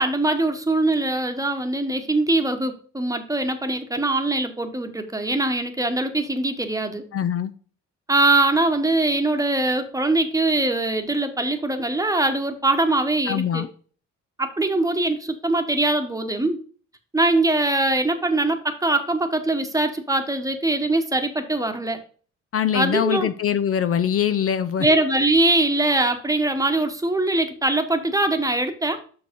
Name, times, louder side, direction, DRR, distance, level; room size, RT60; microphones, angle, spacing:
voice 1, 0.0-7.0 8.1-13.6 14.4-16.6 17.1-22.0 22.7-23.3 24.8-29.0, right 2 dB, 10° right, 7 dB, 1.1 m, -22 dB
voice 2, 7.1-7.5 13.3-13.7 22.5-24.9, left 9 dB, 50° left, 11 dB, 0.6 m, -23 dB
6.2 x 4.7 x 5.2 m, 0.42 s
cardioid pair, 90°, 30 cm